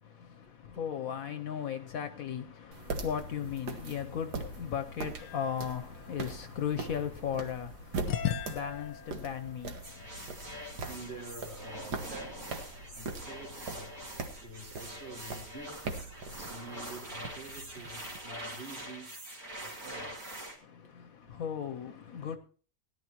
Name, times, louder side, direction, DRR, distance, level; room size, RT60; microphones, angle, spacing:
voice 1, 0.0-10.9 12.0-12.1 20.6-22.4, left 8 dB, 65° left, 1.1 m, -37 dB
sound 1, 2.7-18.2, right 3 dB, 75° right, 1.9 m, -42 dB
sound 2, 5.2-7.3 8.1-11.0, left 10 dB, 90° left, 1.3 m, -40 dB
sound 3, 9.8-20.6, right 1 dB, 60° right, 3.1 m, -44 dB
voice 2, 10.6-12.6 12.9-14.0 14.4-19.1 19.6-20.2 21.0-21.4, right 2 dB, 40° right, 2.4 m, -48 dB
17.5 x 11.0 x 3.0 m
omnidirectional pair, 1.8 m